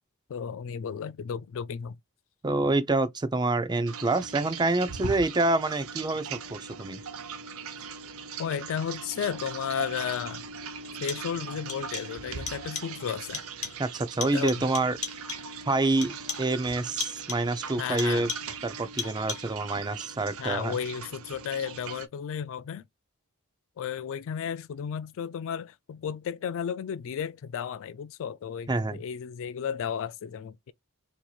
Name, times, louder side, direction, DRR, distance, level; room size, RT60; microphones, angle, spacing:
voice 1, 0.3-2.0 8.4-10.5 11.0-13.4 14.3-14.7 17.8-18.3 20.4-22.8 23.8-30.7, left 7 dB, 60° left, 0.3 m, -33 dB
voice 2, 2.4-7.0 13.8-15.0 15.7-18.3 18.6-20.7 28.7-29.0, right 2 dB, 20° right, 0.5 m, -27 dB
sound 1, 3.9-22.1, right 5 dB, 65° right, 0.6 m, -40 dB
sound 2, 9.8-9.9 10.8-11.4 11.7-12.2 12.5-13.0 13.3-13.9 14.2-15.6 16.0-16.6 17.0-17.6 18.0-18.6 19.0-19.6, left 5 dB, 30° left, 1.0 m, -38 dB
4.4 x 2.8 x 2.3 m
head